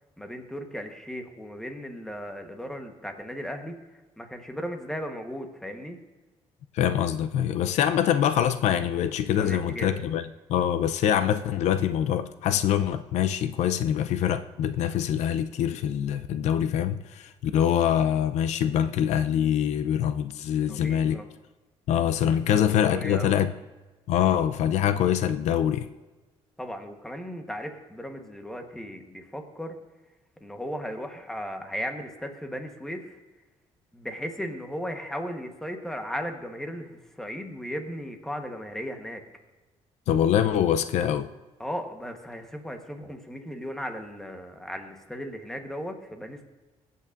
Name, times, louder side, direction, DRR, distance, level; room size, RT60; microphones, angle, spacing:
voice 1, 0.2-3.8 4.2-6.0 9.4-10.0 20.6-21.3 22.5-23.4 26.6-29.7 30.4-33.2 33.9-36.9 37.2-39.2 41.6-46.4, equal, 5° left, 1.0 m, -36 dB
voice 2, 6.7-10.2 10.5-21.2 21.9-23.5 24.1-25.9 40.1-41.3, left 10 dB, 75° left, 0.5 m, -24 dB
23.0 x 8.3 x 2.5 m
cardioid pair, 150°, 12 cm